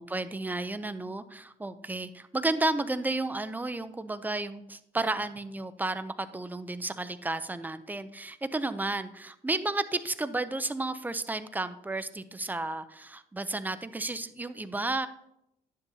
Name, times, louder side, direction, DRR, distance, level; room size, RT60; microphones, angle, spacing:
voice 1, 0.0-15.1, right 2 dB, 10° right, 12 dB, 0.5 m, -32 dB
11.0 x 9.8 x 2.7 m, 0.82 s
cardioid pair, 110°, 17 cm